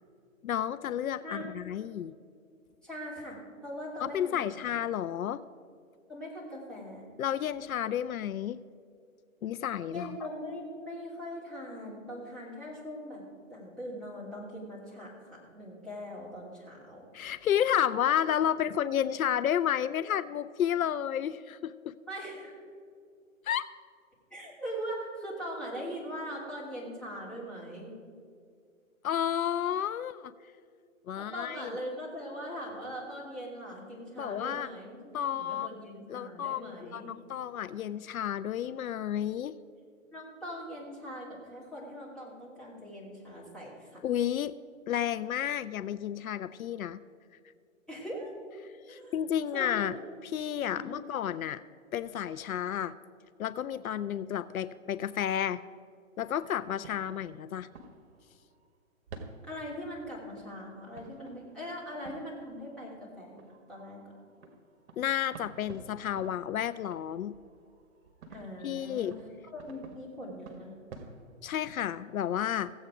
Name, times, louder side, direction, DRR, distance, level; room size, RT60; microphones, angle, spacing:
voice 1, 0.4-2.1 4.0-5.4 7.2-8.6 9.4-10.2 17.1-22.0 23.4-23.7 29.0-30.3 31.1-31.7 34.2-34.7 35.1-35.8 36.1-39.6 44.0-44.5 44.9-47.0 48.6-50.0 50.2-51.6 51.9-52.9 53.4-55.6 56.2-57.7 65.0-67.4 68.6-69.2 71.4-72.7, left 10 dB, 85° left, 15 dB, 0.5 m, -31 dB
voice 2, 1.2-1.8 2.8-4.7 6.1-7.1 9.9-13.2 13.5-17.1 22.1-22.6 24.3-28.0 31.1-37.1 40.1-44.0 47.9-48.3 48.9-49.1 49.5-50.0 50.7-51.0 59.4-63.4 63.7-64.1 68.3-69.1 69.5-70.7, equal, ahead, -7 dB, 2.9 m, -41 dB
sound 1, 54.5-55.4 56.5-58.8 59.1-71.9, right 3 dB, 50° right, 1.5 m, -52 dB
16.0 x 8.0 x 4.9 m, 2.2 s
hypercardioid pair, 135°, 41 cm